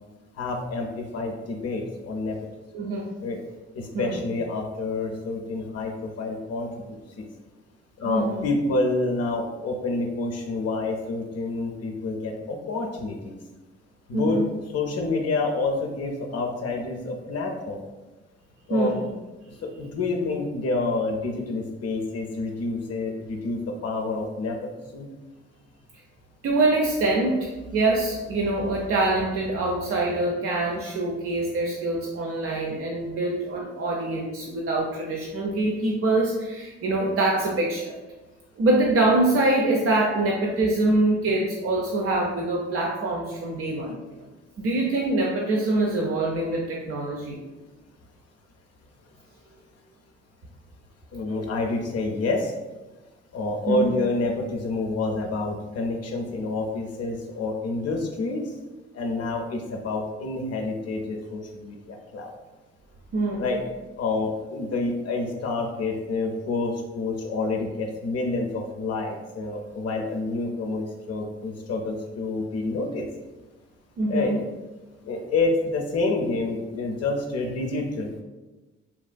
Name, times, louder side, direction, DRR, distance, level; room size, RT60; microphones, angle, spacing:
voice 1, 0.4-2.4 3.2-3.4 3.7-7.3 8.0-13.4 14.1-14.4 14.7-17.8 18.7-18.9 19.6-24.6 24.8-25.1 51.1-52.5 53.3-58.5 58.9-62.3 63.4-63.6 64.0-73.1 74.1-74.3 75.0-78.2, left 3 dB, 45° left, 2 dB, 0.5 m, -28 dB
voice 2, 2.7-3.1 3.9-4.2 8.0-8.5 14.1-14.4 18.7-19.0 26.4-37.9 38.6-44.0 44.6-47.4 53.7-53.9 63.1-63.5 74.0-74.4, right 2 dB, 40° right, -2 dB, 0.5 m, -24 dB
3.5 x 2.3 x 2.2 m, 1.1 s
hypercardioid pair, 45°, 36 cm